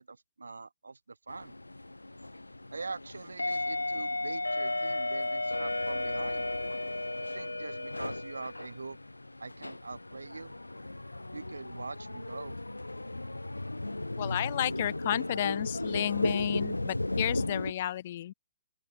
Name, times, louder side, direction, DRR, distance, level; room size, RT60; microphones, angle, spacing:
voice 1, 0.0-1.5 2.7-6.4 7.3-9.0 9.4-10.5 11.3-12.6, right 4 dB, 75° right, 6.3 m, -43 dB
sound 1, 1.3-17.7, left 2 dB, 90° left, 0.5 m, -35 dB
voice 2, 14.2-18.3, left 12 dB, 50° left, 0.6 m, -32 dB
open air
figure-of-eight pair, 125°, 0 cm